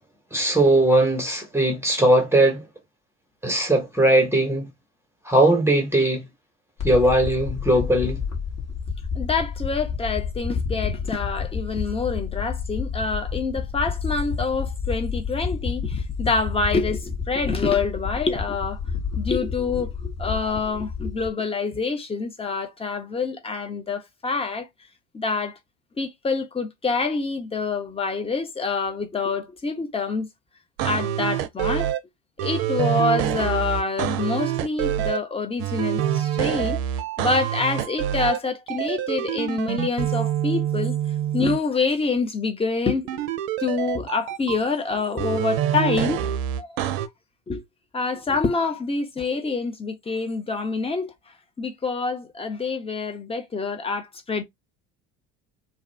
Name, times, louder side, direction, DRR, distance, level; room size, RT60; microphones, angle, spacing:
voice 1, 0.3-2.6 3.4-4.7 5.3-6.2 6.8-8.2, right 1 dB, 5° right, 1.0 m, -19 dB
sound 1, 6.8-21.3, left 6 dB, 45° left, 1.3 m, -30 dB
voice 2, 9.1-18.8 19.2-24.7 25.1-25.6 26.0-30.3 30.8-31.9 32.4-36.8 37.2-41.0 41.3-43.3 43.6-46.2 46.6-46.8 47.5-47.6 47.9-51.1 51.6-54.4, left 4 dB, 15° left, 0.8 m, -26 dB
sound 2, 30.8-32.0 32.4-35.2 35.6-38.4 38.7-41.6 43.1-44.6 45.2-47.1, right 11 dB, 60° right, 0.5 m, -26 dB
2.7 x 2.3 x 3.2 m
figure-of-eight pair, 65°, 37 cm